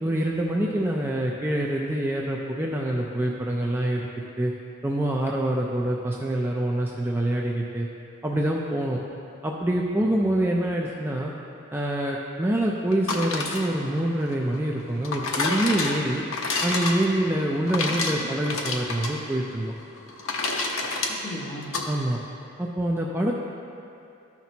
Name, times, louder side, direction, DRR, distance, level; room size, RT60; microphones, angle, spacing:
voice 1, 0.0-4.1 4.4-4.5 4.8-7.9 8.2-9.0 9.4-11.3 11.7-16.2 16.6-19.7 21.9-22.2 22.6-23.3, right 1 dB, 10° right, -2 dB, 0.4 m, -26 dB
sound 1, 12.9-21.9, left 3 dB, 70° left, 0.8 m, -29 dB
voice 2, 17.9-18.3 21.1-21.7, left 1 dB, 35° left, -6 dB, 1.5 m, -37 dB
13.0 x 5.9 x 2.8 m, 2.6 s
head